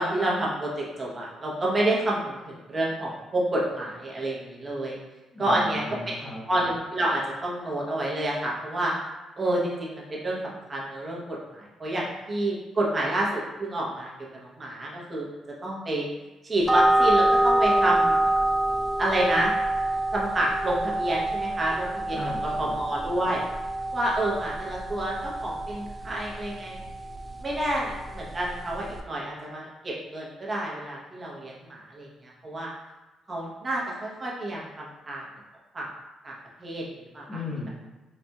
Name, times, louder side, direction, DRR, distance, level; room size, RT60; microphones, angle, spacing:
voice 1, 0.0-5.0 5.4-6.0 6.5-8.9 9.4-15.3 15.6-16.1 16.4-18.2 19.0-19.5 20.1-22.2 22.6-23.5 23.9-26.8 27.4-32.7 33.3-35.2 35.7-35.9 36.2-37.4, right 1 dB, 30° right, -4 dB, 0.9 m, -29 dB
voice 2, 5.3-6.4 22.1-22.7 37.3-37.7, left 2 dB, 10° left, -6 dB, 1.1 m, -36 dB
sound 1, 16.6-29.0, right 1 dB, 10° right, 0.4 m, -26 dB
4.1 x 2.4 x 2.3 m, 1.1 s
cardioid pair, 90°, 0 cm